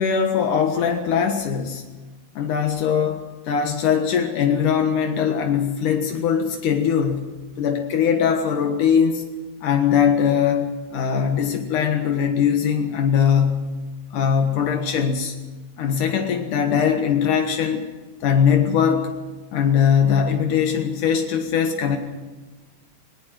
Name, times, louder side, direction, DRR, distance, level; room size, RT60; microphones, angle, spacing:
voice 1, 0.0-1.9 2.4-7.2 7.6-9.3 9.6-13.7 14.1-15.4 15.8-17.8 18.2-19.1 19.5-22.0, left 7 dB, 75° left, 4 dB, 3.0 m, -21 dB
20.0 x 19.5 x 7.7 m, 1.3 s
omnidirectional pair, 3.7 m